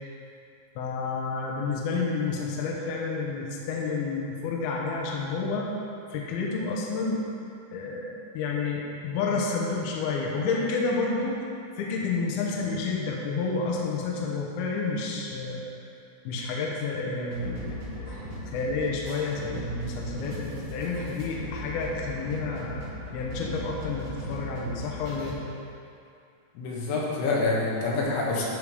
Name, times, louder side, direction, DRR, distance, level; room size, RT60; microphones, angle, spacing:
voice 1, 0.8-5.7 6.1-7.3 7.7-11.4 11.8-15.6 16.2-18.2 18.5-22.8 23.1-25.4, left 4 dB, 70° left, -2 dB, 2.6 m, -30 dB
sound 1, 17.3-25.3, equal, 45° right, 3.4 m, -38 dB
voice 2, 26.6-28.4, left 3 dB, 85° left, -4 dB, 3.8 m, -26 dB
12.0 x 5.0 x 5.0 m, 2.5 s
omnidirectional pair, 5.2 m